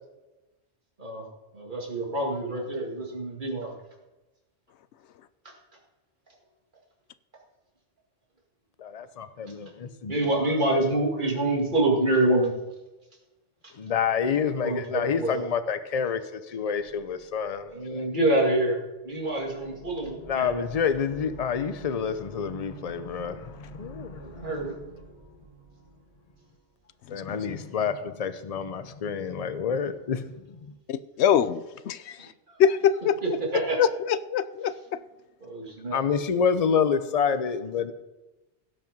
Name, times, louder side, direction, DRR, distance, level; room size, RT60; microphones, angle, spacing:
voice 1, 1.5-3.7 9.5-12.5 14.6-15.4 17.7-18.8 19.0-20.7 24.0-24.8 32.5-32.6 33.5-33.8 35.4-36.0, right 1 dB, 45° right, -2 dB, 2.5 m, -27 dB
voice 2, 8.8-10.3 13.8-18.1 20.2-24.7 27.1-30.8 35.9-37.9, left 6 dB, 40° left, 11 dB, 0.7 m, -28 dB
sound 1, 16.8-18.3 18.9-27.0, right 3 dB, 90° right, 2.1 m, -49 dB
voice 3, 27.0-27.6 30.9-32.3 32.6-33.2 33.8-35.0, left 8 dB, 80° left, 15 dB, 0.9 m, -24 dB
17.0 x 5.7 x 5.3 m, 1.1 s
omnidirectional pair, 1.1 m